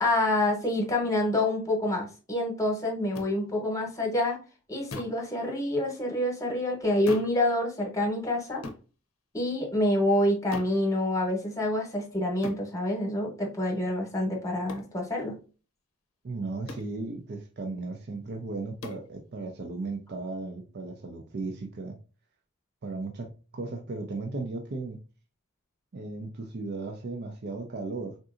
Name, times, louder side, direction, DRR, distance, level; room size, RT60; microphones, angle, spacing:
voice 1, 0.0-4.4 4.7-8.6 9.3-15.4, left 1 dB, 15° left, 0 dB, 1.0 m, -27 dB
sound 1, 3.1-3.3 4.9-5.2 7.1-7.4 8.6-8.9 10.5-10.8 12.4-12.7 14.7-14.9 16.7-16.9 18.8-19.1, left 3 dB, 75° left, 0.7 m, -40 dB
voice 2, 16.2-22.0 22.8-25.0 25.9-28.2, right 3 dB, 50° right, 3 dB, 0.5 m, -36 dB
3.8 x 2.6 x 2.4 m, 0.34 s
head